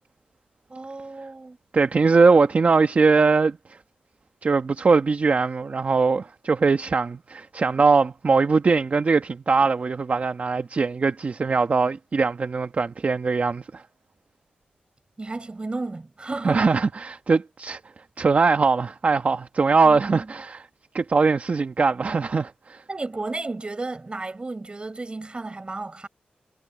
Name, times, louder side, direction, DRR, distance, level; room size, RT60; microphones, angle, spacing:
voice 1, 0.7-1.6 15.2-16.7 19.8-20.3 22.9-26.1, right 3 dB, 35° right, 4.8 m, -33 dB
voice 2, 1.7-3.8 4.4-13.8 16.4-17.8 18.2-20.7 20.9-22.8, right 4 dB, 50° right, 1.3 m, -21 dB
cardioid pair, 70°, 3 cm